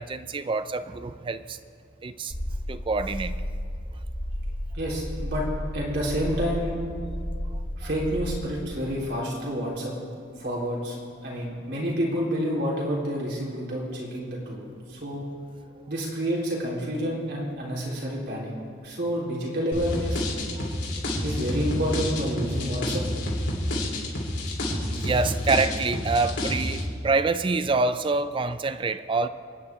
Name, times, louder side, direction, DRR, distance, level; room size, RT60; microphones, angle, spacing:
voice 1, 0.0-1.6 2.0-2.3 2.7-3.4 20.6-20.7 24.9-29.3, right 3 dB, 25° right, 12 dB, 0.4 m, -26 dB
sound 1, 2.3-8.4, equal, 40° left, 1.8 m, -32 dB
voice 2, 4.7-5.4 5.7-6.8 7.8-9.9 10.4-11.0 11.2-14.6 14.9-15.3 15.9-18.5 18.8-20.2 21.2-23.0, equal, 60° right, -4 dB, 3.7 m, -29 dB
sound 2, 19.7-26.8, left 1 dB, 70° left, 3.6 m, -29 dB
29.0 x 9.7 x 3.6 m, 2.3 s
head